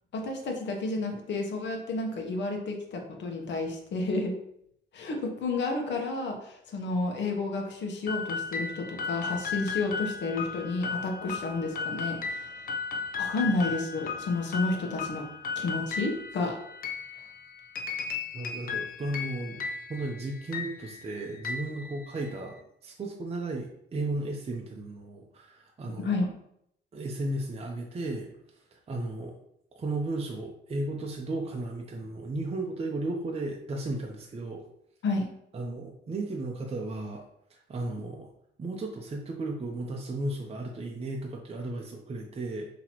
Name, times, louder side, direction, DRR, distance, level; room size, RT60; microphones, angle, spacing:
voice 1, 0.1-4.3 4.9-12.5 13.2-15.3 15.6-16.6 26.0-26.3 35.0-35.3, left 3 dB, 65° left, 2 dB, 1.0 m, -31 dB
sound 1, 8.1-22.5, left 5 dB, 45° left, 0.5 m, -36 dB
voice 2, 18.3-19.6 19.9-26.1 26.9-28.3 28.7-29.3 29.8-34.6 35.5-37.2 37.5-38.3 38.6-42.7, right 2 dB, 30° right, 1 dB, 0.6 m, -34 dB
5.7 x 2.9 x 3.0 m, 0.75 s
cardioid pair, 90°, 20 cm